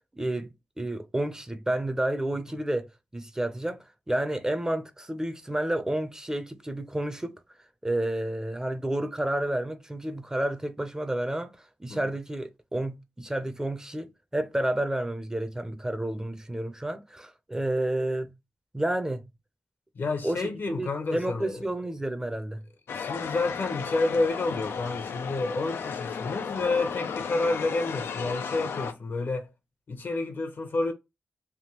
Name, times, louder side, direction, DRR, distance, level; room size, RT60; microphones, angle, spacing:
voice 1, 0.1-0.5 0.8-2.9 3.1-3.8 4.1-7.4 7.8-11.5 11.8-18.3 18.7-19.2 20.2-20.5 20.8-22.6, right 1 dB, 15° right, 0.6 m, -30 dB
voice 2, 19.9-21.6 22.9-29.5 29.9-30.9, left 3 dB, 65° left, 0.9 m, -29 dB
sound 1, 22.9-28.9, left 6 dB, 85° left, 0.4 m, -34 dB
3.5 x 2.2 x 2.9 m
cardioid pair, 55°, 4 cm